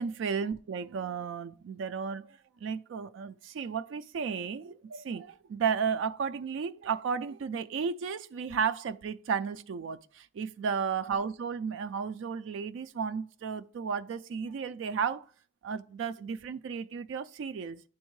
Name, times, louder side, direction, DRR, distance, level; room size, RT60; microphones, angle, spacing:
voice 1, 0.0-15.3 15.6-17.8, right 6 dB, 70° right, 0.3 m, -33 dB
10.0 x 3.6 x 3.1 m
head